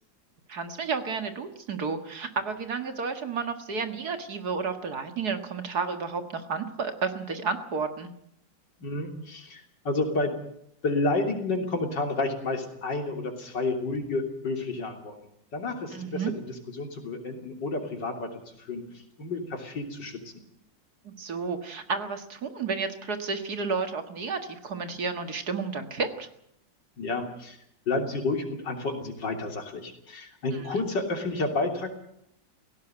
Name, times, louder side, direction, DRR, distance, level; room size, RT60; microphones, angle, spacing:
voice 1, 0.5-8.1 15.9-16.3 21.0-26.3 30.5-30.7, right 5 dB, 55° right, 7 dB, 2.2 m, -31 dB
voice 2, 8.8-10.3 10.8-15.1 15.5-16.2 16.7-18.3 18.6-18.8 19.2-20.2 27.0-27.6 27.9-31.9, left 2 dB, 70° left, 4 dB, 3.8 m, -30 dB
17.0 x 17.0 x 9.2 m, 0.73 s
omnidirectional pair, 2.0 m